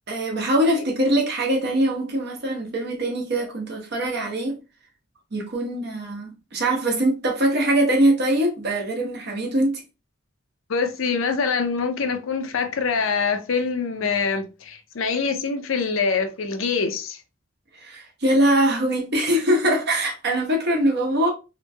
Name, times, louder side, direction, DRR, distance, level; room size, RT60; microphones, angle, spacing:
voice 1, 0.1-4.6 5.3-9.8 17.8-21.3, right 1 dB, 55° right, 0.9 m, -22 dB
voice 2, 10.7-17.2, left 5 dB, 85° left, 0.5 m, -24 dB
2.9 x 2.6 x 2.2 m
head